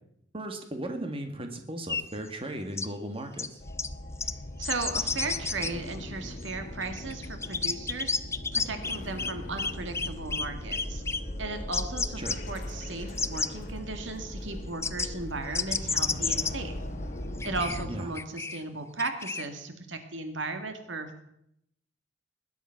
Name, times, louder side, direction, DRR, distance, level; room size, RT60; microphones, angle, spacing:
voice 1, 0.3-3.5 12.2-12.4 17.9-18.1, right 1 dB, 30° right, 5 dB, 2.0 m, -36 dB
sound 1, 1.9-2.0 2.8-2.9 3.4-3.5 3.8-3.9 4.2-4.3 4.6-5.7 6.4-6.5 6.8-9.3 9.6-10.5 10.7-11.2 11.7-12.4 12.9-13.5 14.8-15.1 15.5-16.5 17.4-18.6 19.0-19.5, left 4 dB, 15° left, 0.6 m, -30 dB
sound 2, 3.6-18.0, left 1 dB, 45° left, 2.2 m, -39 dB
voice 2, 4.6-11.0 11.4-16.8 17.4-21.2, right 3 dB, 85° right, 7 dB, 2.1 m, -36 dB
20.5 x 11.0 x 5.9 m, 0.76 s
head